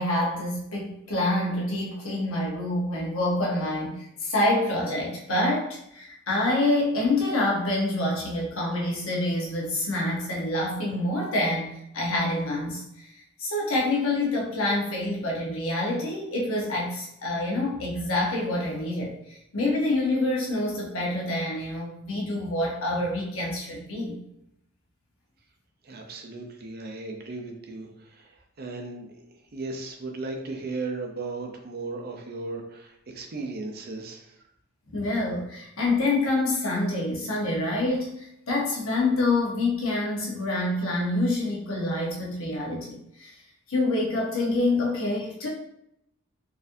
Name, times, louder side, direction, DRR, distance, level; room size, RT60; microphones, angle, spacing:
voice 1, 0.0-12.8 13.1-24.2 34.9-43.3 43.7-45.5, left 2 dB, 70° left, -3 dB, 1.0 m, -27 dB
voice 2, 25.8-29.1 29.5-34.3, right 3 dB, 45° right, 3 dB, 0.5 m, -36 dB
4.1 x 2.6 x 2.6 m, 0.79 s
head